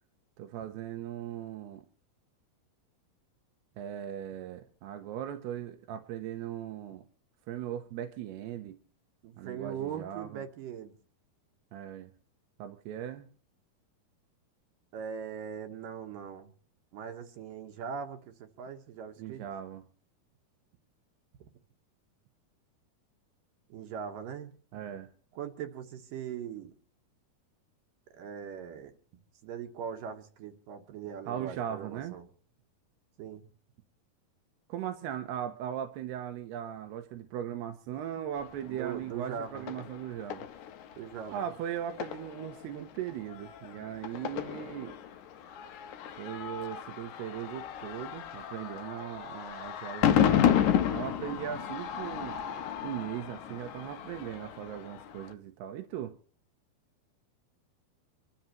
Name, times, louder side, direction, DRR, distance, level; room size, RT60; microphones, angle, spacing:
voice 1, 0.4-1.8 3.8-7.0 7.5-8.8 9.4-10.4 11.7-12.1 12.6-13.3 19.2-19.8 24.7-25.1 31.3-32.1 34.7-40.5 41.3-45.0 46.2-50.4 50.9-52.4 52.8-56.2, right 10 dB, 90° right, 6 dB, 3.1 m, -38 dB
voice 2, 9.2-10.9 14.9-16.5 16.9-19.4 23.7-24.5 25.4-26.7 28.2-28.9 29.4-32.3 33.2-33.5 38.6-39.7 41.0-41.4, right 7 dB, 70° right, 5 dB, 2.6 m, -40 dB
sound 1, 38.4-55.3, left 9 dB, 75° left, 1.8 m, -33 dB
26.0 x 13.5 x 3.0 m, 0.43 s
omnidirectional pair, 4.5 m